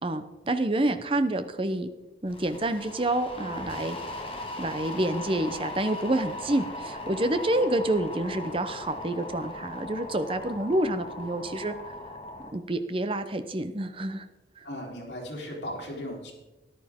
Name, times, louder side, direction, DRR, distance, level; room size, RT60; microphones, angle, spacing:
voice 1, 0.0-1.9 2.2-4.0 4.6-11.7 12.5-14.2 14.6-14.7, right 1 dB, 30° right, 10 dB, 0.7 m, -28 dB
sound 1, 2.3-12.5, left 2 dB, 30° left, 1.6 m, -39 dB
voice 2, 14.6-16.3, equal, 75° left, -2 dB, 3.6 m, -37 dB
13.5 x 11.0 x 3.6 m, 1.1 s
head